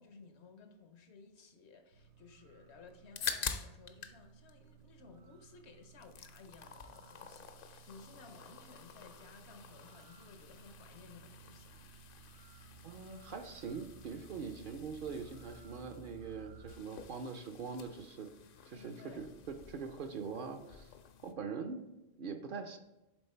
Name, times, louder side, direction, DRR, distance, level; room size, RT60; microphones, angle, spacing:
voice 1, 0.0-11.8 18.7-19.3, left 4 dB, 80° left, 6 dB, 1.1 m, -57 dB
sound 1, 1.9-16.8, right 4 dB, 85° right, 0.9 m, -58 dB
sound 2, 2.9-4.2 4.5-5.5 5.8-21.3, left 7 dB, 60° left, 0.7 m, -48 dB
voice 2, 12.8-18.3 18.7-20.9 21.2-21.8 22.2-22.8, right 5 dB, 60° right, 6 dB, 0.6 m, -43 dB
7.7 x 3.6 x 4.3 m, 0.99 s
omnidirectional pair, 1.1 m